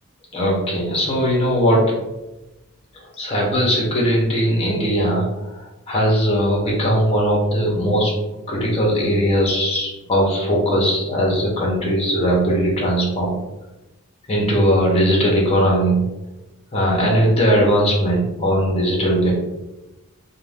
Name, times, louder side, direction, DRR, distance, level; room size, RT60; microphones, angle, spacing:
voice 1, 0.3-1.8 3.2-5.3 5.9-8.1 8.5-13.3 14.3-16.0 16.7-19.3, equal, 25° left, -3 dB, 0.8 m, -19 dB
2.5 x 2.2 x 3.3 m, 1.0 s
head